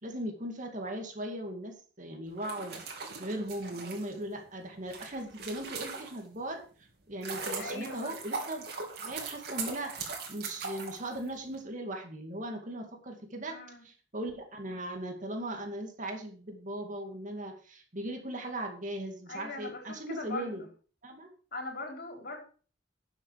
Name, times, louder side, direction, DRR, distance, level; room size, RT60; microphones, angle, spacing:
voice 1, 0.0-2.8 3.0-6.6 7.1-8.7 9.0-10.0 10.3-13.6 13.8-20.6 21.0-21.3, right 1 dB, 45° right, 3 dB, 2.3 m, -38 dB
sound 1, 2.3-6.4 6.9-11.6, right 4 dB, 60° right, 3.2 m, -40 dB
voice 2, 7.6-8.1 13.4-13.8 19.3-20.7 21.5-22.4, left 2 dB, 55° left, 2 dB, 4.0 m, -40 dB
12.5 x 7.4 x 4.8 m, 0.40 s
head